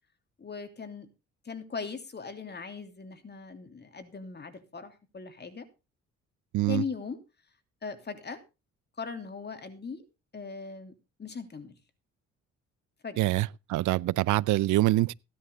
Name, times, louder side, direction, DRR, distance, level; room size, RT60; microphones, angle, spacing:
voice 1, 0.4-1.1 1.4-5.7 6.7-7.2 7.8-8.4 9.0-10.0 10.3-10.9 11.2-11.8 13.0-13.3, left 5 dB, 35° left, 3.0 m, -39 dB
voice 2, 13.2-15.1, right 16 dB, 80° right, 0.6 m, -25 dB
16.5 x 11.0 x 3.5 m
cardioid pair, 90°, 30 cm